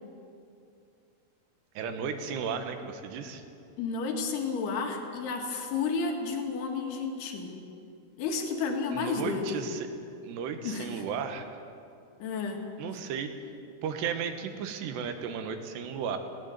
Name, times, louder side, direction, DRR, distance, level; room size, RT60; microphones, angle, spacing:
voice 1, 1.7-3.5 8.9-9.9 10.2-11.4 12.8-13.3 13.8-16.2, right 7 dB, 80° right, 7 dB, 3.3 m, -34 dB
voice 2, 3.8-7.5 8.2-9.6 10.6-11.0 12.2-12.6, left 4 dB, 75° left, 3 dB, 3.9 m, -31 dB
19.0 x 17.0 x 8.1 m, 2.6 s
omnidirectional pair, 4.9 m